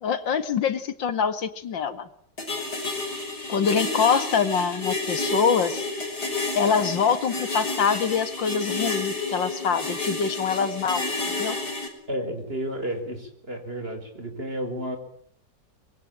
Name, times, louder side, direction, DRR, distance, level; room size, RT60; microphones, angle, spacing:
voice 1, 0.0-2.1 3.5-5.9 6.5-11.6, left 6 dB, 90° left, 12 dB, 2.5 m, -25 dB
sound 1, 2.4-11.9, left 2 dB, 60° left, 6.6 m, -30 dB
voice 2, 12.1-15.0, right 1 dB, 30° right, 7 dB, 5.1 m, -32 dB
25.0 x 22.5 x 8.8 m, 0.63 s
omnidirectional pair, 2.0 m